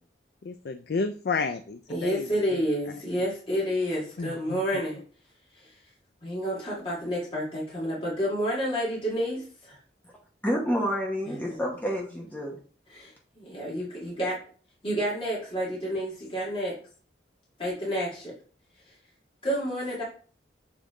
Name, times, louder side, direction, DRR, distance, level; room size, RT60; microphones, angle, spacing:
voice 1, 0.4-2.6 4.2-4.6, left 4 dB, 60° left, 9 dB, 0.4 m, -31 dB
voice 2, 1.9-5.0 5.6-5.7 6.2-9.8 11.3-11.6 12.9-14.4 14.8-16.7 17.6-18.3 19.4-20.0, equal, 30° left, -6 dB, 2.2 m, -30 dB
voice 3, 10.4-12.6, equal, 10° left, -2 dB, 1.0 m, -28 dB
7.2 x 3.9 x 3.7 m, 0.41 s
head